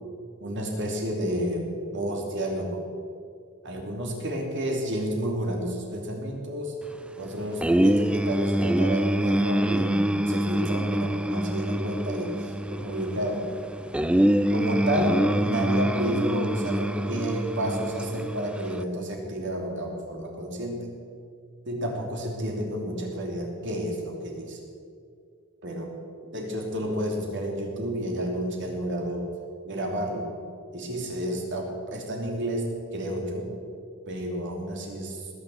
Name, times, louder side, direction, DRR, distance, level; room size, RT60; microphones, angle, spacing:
voice 1, 0.4-1.7 1.9-2.8 3.6-6.8 7.2-13.5 14.5-21.0 21.6-24.6 25.6-25.9 26.3-29.3 29.6-30.3 30.7-33.5 34.1-35.2, equal, 60° right, 1 dB, 3.0 m, -30 dB
sound 1, 7.6-18.8, right 1 dB, 5° right, 0.3 m, -25 dB
19.5 x 7.0 x 7.7 m, 2.3 s
head